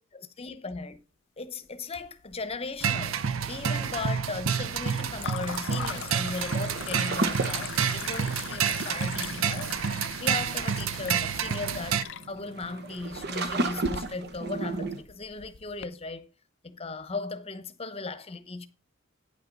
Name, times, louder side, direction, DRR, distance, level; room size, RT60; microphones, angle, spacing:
voice 1, 0.2-1.0 1.4-9.8 10.2-16.3 16.6-18.7, left 3 dB, 30° left, 0.9 m, -37 dB
sound 1, 2.0-2.8 3.1-3.7 5.2-15.9, left 8 dB, 60° left, 0.5 m, -41 dB
sound 2, 2.8-12.0, right 7 dB, 80° right, 0.6 m, -29 dB
sound 3, 6.7-15.0, right 3 dB, 55° right, 1.0 m, -35 dB
9.3 x 5.8 x 5.3 m
head